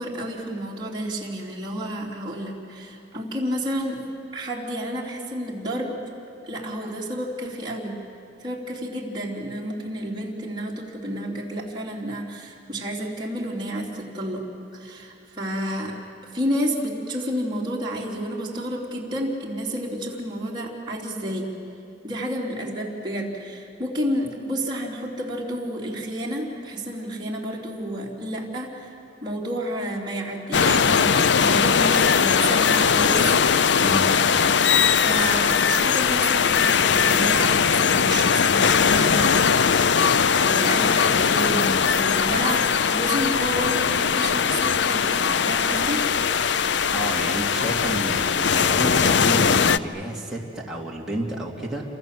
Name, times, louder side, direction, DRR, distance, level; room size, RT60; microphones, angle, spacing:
voice 1, 0.0-4.0 4.3-6.0 6.4-8.0 8.4-14.5 14.7-16.0 16.3-21.5 22.0-33.4 35.0-39.8 40.4-46.0, right 1 dB, 25° right, -4 dB, 3.7 m, -30 dB
sound 1, 30.5-49.8, left 6 dB, 75° left, 0.6 m, -20 dB
voice 2, 46.9-51.8, right 1 dB, 5° right, -4 dB, 2.8 m, -30 dB
29.0 x 26.5 x 7.7 m, 2.6 s
head